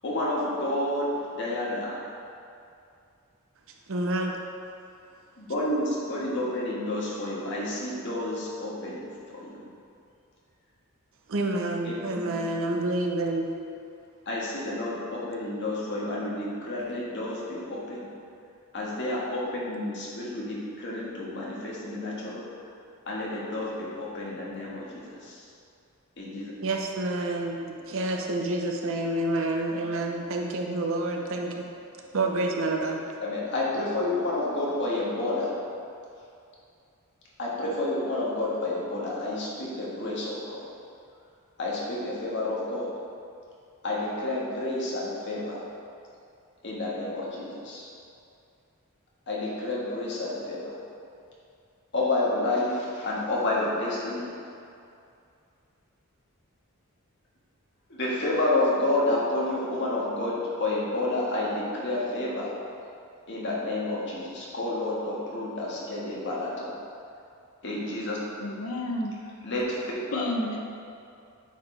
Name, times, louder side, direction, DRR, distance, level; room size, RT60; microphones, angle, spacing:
voice 1, 0.0-2.0 5.4-9.7 11.8-11.9 12.4-12.5 14.2-18.1 18.7-22.4 23.1-25.4 26.2-26.5 33.2-35.5 37.4-40.6 41.6-42.9 43.8-45.6 46.6-47.9 49.3-50.6 51.9-54.3 57.9-62.5 63.3-66.8 67.6-68.2 69.4-70.2, left 2 dB, 55° left, -5 dB, 1.5 m, -30 dB
voice 2, 3.9-4.3 11.3-13.5 26.6-31.6 32.1-33.2, right 2 dB, 60° right, 2 dB, 0.7 m, -28 dB
voice 3, 68.4-69.1 70.1-70.6, left 1 dB, 80° left, 1 dB, 0.7 m, -30 dB
9.2 x 4.4 x 3.3 m, 2.5 s
head